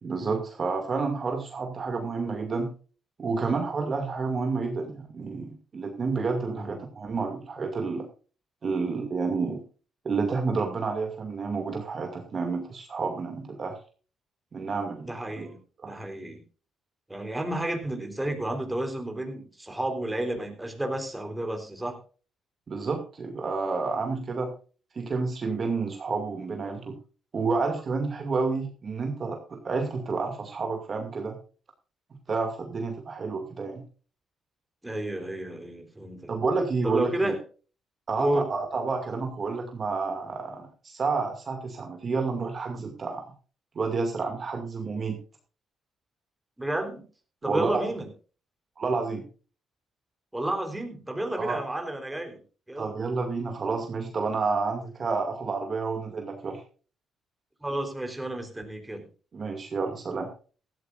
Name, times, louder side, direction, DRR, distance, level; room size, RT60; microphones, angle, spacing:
voice 1, 0.0-2.7 3.2-8.1 8.6-9.6 10.0-13.8 14.5-15.5 15.8-16.0 22.7-24.5 24.9-27.0 27.3-31.4 32.3-33.8 36.3-37.3 38.1-43.3 43.7-45.2 47.4-47.8 48.8-49.3 51.4-51.6 52.8-56.6 59.3-60.3, right 4 dB, 40° right, 4 dB, 2.3 m, -30 dB
voice 2, 15.0-16.4 17.1-22.0 34.8-36.3 36.8-37.4 38.2-38.5 46.6-47.0 47.4-48.1 50.3-52.4 52.7-52.9 57.6-59.0, right 1 dB, 10° right, 4 dB, 3.8 m, -31 dB
17.0 x 13.5 x 2.5 m, 0.37 s
cardioid pair, 90°, 0 cm